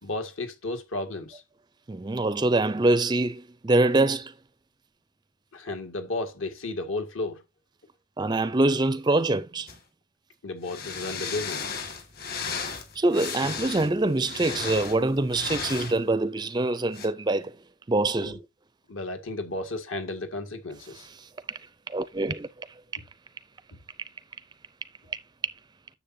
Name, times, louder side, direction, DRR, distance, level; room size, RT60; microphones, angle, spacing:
voice 1, 0.0-1.4 5.5-7.4 10.4-11.7 18.2-18.4 18.9-21.1, left 2 dB, 65° left, 1.8 m, -33 dB
voice 2, 1.9-4.3 8.2-9.7 13.0-17.6 17.9-18.4 21.2-21.6 21.9-22.7, right 2 dB, 20° right, 0.4 m, -24 dB
sound 1, 9.7-9.8 10.6-16.0 16.9-17.1, left 5 dB, 45° left, 1.8 m, -35 dB
10.0 x 7.1 x 2.7 m
head